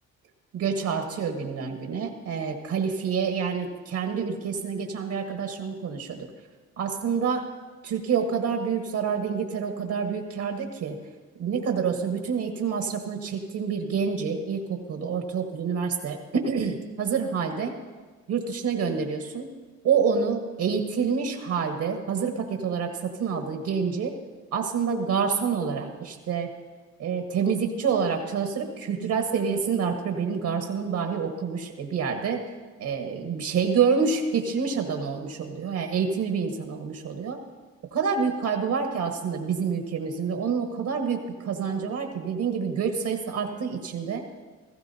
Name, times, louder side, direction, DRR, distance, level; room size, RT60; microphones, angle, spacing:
voice 1, 0.5-6.3 6.8-7.5 7.8-11.0 11.4-17.8 18.3-19.5 19.8-24.1 24.5-26.5 27.0-32.4 32.8-37.4 37.9-44.2, right 6 dB, 80° right, 4 dB, 1.4 m, -27 dB
17.0 x 15.0 x 2.8 m, 1.4 s
cardioid pair, 90°, 30 cm